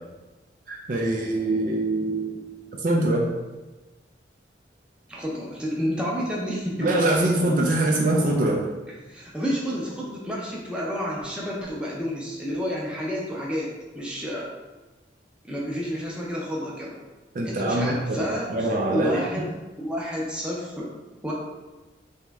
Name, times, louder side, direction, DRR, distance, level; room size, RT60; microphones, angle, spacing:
voice 1, 0.7-2.5 2.8-3.3 6.8-8.7 17.3-19.4, right 1 dB, 45° right, -1 dB, 0.4 m, -24 dB
voice 2, 5.1-6.9 9.1-14.5 15.4-17.0 17.4-20.9 21.2-21.3, equal, 5° right, -5 dB, 0.6 m, -30 dB
3.5 x 3.1 x 3.4 m, 1.2 s
head